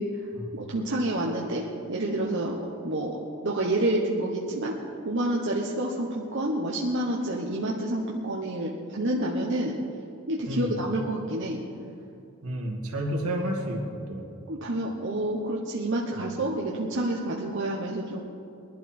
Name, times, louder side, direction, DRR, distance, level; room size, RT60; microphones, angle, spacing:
voice 1, 0.5-3.2 3.4-4.7 5.0-9.8 10.3-11.6 14.5-18.2, right 1 dB, 55° right, -2 dB, 1.2 m, -28 dB
voice 2, 10.5-10.8 12.4-13.8 14.1-14.2 16.1-16.3, right 1 dB, 80° right, -1 dB, 2.5 m, -30 dB
21.0 x 11.5 x 4.5 m, 2.7 s
head